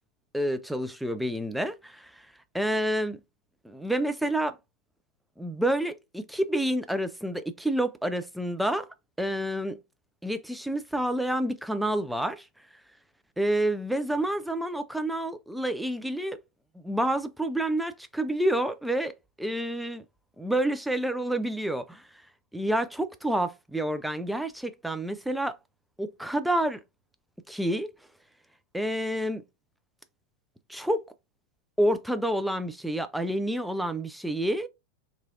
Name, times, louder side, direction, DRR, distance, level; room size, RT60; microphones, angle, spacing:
voice 1, 0.3-2.1 2.5-3.2 3.6-4.6 5.4-8.9 9.2-9.8 10.2-12.5 13.4-16.4 16.8-19.1 19.4-20.0 20.4-22.0 22.5-25.6 26.0-26.8 27.5-27.9 28.7-29.4 30.7-31.0 31.8-34.7, right 1 dB, ahead, 0.3 m, -28 dB
2.9 x 2.6 x 2.4 m
figure-of-eight pair, 90°, 0 cm